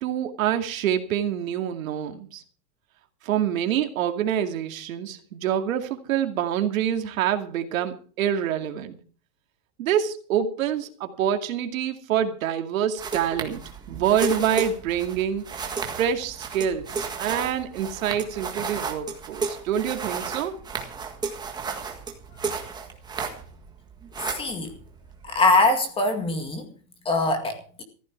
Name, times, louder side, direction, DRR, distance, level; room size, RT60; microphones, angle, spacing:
voice 1, 0.0-2.4 3.2-9.0 9.8-13.6 13.9-15.5 16.0-16.9 17.2-20.6, right 9 dB, 75° right, 2.4 m, -26 dB
sound 1, 13.0-23.7 23.9-25.4, right 5 dB, 10° right, 1.7 m, -33 dB
voice 2, 24.3-24.7 25.2-26.7 27.1-27.8, left 2 dB, 15° left, 2.0 m, -23 dB
15.0 x 14.0 x 4.6 m
supercardioid pair, 170°, 41 cm